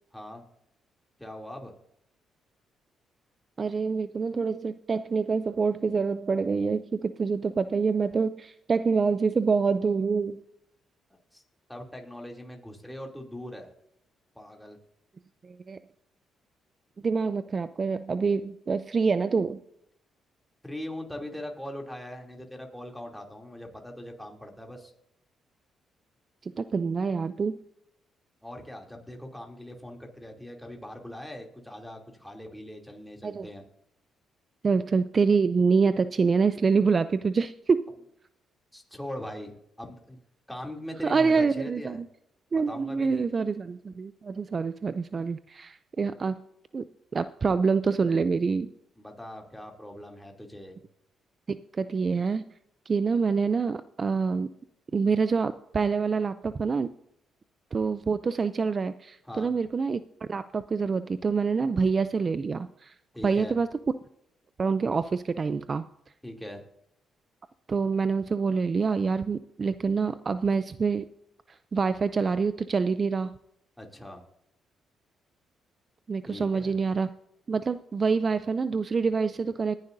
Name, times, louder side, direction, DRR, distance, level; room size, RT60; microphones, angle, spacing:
voice 1, 0.1-0.4 1.2-1.7 11.3-11.4 11.7-13.7 14.3-14.8 20.6-24.9 28.4-33.6 38.7-40.2 40.5-42.0 42.5-43.2 49.0-50.8 59.2-59.5 63.1-63.6 66.2-66.6 73.8-74.2 76.2-76.8, left 1 dB, 5° left, 1 dB, 2.9 m, -41 dB
voice 2, 3.6-10.4 15.4-15.8 17.0-19.6 26.4-27.6 33.2-33.5 34.6-37.9 41.0-42.1 42.5-46.4 46.7-46.8 47.1-48.7 51.5-52.4 52.9-54.5 54.9-56.9 57.7-63.0 63.2-63.7 64.6-65.9 67.7-71.1 71.5-73.3 76.1-77.1 77.5-79.8, right 5 dB, 35° right, 13 dB, 0.4 m, -26 dB
19.5 x 10.5 x 2.7 m, 0.78 s
cardioid pair, 90°, 0 cm